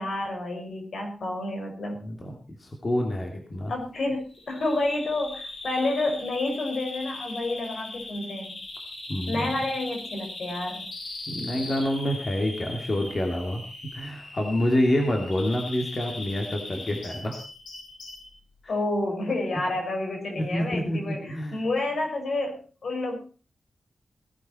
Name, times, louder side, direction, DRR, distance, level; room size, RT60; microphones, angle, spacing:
voice 1, 0.0-2.0 3.7-8.6 9.3-10.9 18.7-23.2, left 2 dB, 70° left, 2 dB, 5.7 m, -29 dB
voice 2, 2.0-2.3 2.6-3.7 9.1-9.5 11.3-13.6 13.9-17.3 18.6-18.7 20.4-21.6, left 1 dB, 35° left, 2 dB, 2.9 m, -27 dB
Bird vocalization bird call bird song, 4.3-18.3, left 2 dB, 85° left, 7.1 m, -39 dB
17.5 x 11.5 x 4.5 m, 0.36 s
wide cardioid pair, 120°, 0 cm